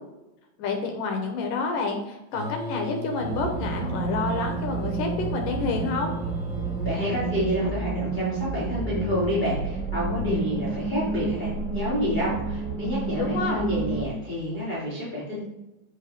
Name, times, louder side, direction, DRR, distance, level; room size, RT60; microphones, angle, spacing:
voice 1, 0.6-6.1 13.2-13.7, left 4 dB, 70° left, 3 dB, 2.4 m, -29 dB
sound 1, 2.3-7.3, equal, 80° right, 4.6 m, -38 dB
sound 2, 3.2-14.1, right 3 dB, 30° right, 3.0 m, -30 dB
voice 2, 6.8-15.4, equal, 15° left, -10 dB, 2.7 m, -29 dB
8.2 x 7.2 x 3.6 m, 0.94 s
omnidirectional pair, 4.3 m